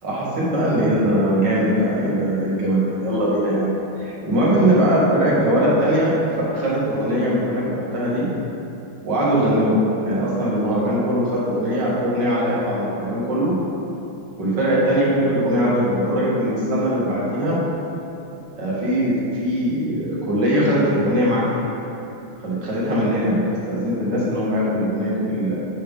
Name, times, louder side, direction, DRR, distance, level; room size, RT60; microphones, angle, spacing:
voice 1, 0.0-8.3 9.0-9.8 10.0-13.6 14.4-17.6 18.6-21.5 22.4-25.6, equal, 60° right, -7 dB, 2.2 m, -21 dB
8.6 x 5.5 x 3.6 m, 3.0 s
omnidirectional pair, 2.2 m